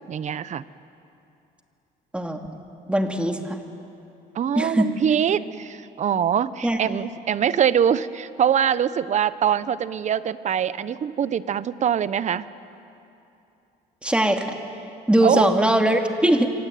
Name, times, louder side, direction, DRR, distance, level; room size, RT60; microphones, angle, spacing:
voice 1, 0.1-0.7 4.3-12.5 15.2-15.5, right 9 dB, 45° right, 16 dB, 0.9 m, -23 dB
voice 2, 2.1-2.5 2.9-3.6 4.6-4.9 6.6-6.8 14.0-14.5 15.1-16.5, right 1 dB, 5° right, 4 dB, 2.5 m, -20 dB
26.5 x 23.5 x 9.3 m, 2.8 s
cardioid pair, 110°, 17 cm